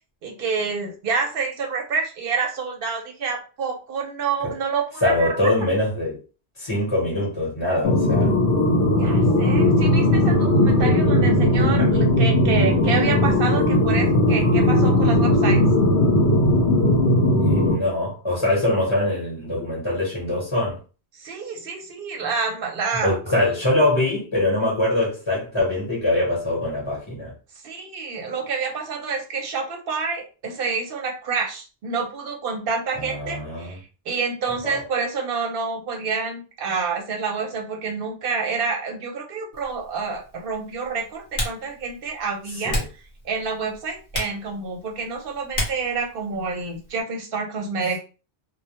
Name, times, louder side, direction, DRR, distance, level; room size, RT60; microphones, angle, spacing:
voice 1, 0.2-5.3 9.0-15.6 21.1-23.2 27.6-42.8 43.2-48.0, right 5 dB, 60° right, 2 dB, 0.7 m, -28 dB
voice 2, 5.0-6.2 6.6-8.3 17.4-20.8 23.0-27.3 33.0-33.7 34.6-34.8 42.6-42.8, left 1 dB, 25° left, -6 dB, 0.9 m, -23 dB
sound 1, 7.8-17.7, left 1 dB, 85° left, 0.9 m, -18 dB
Typing, 39.5-47.0, left 1 dB, 55° left, 0.9 m, -34 dB
2.1 x 2.1 x 2.8 m, 0.35 s
omnidirectional pair, 1.1 m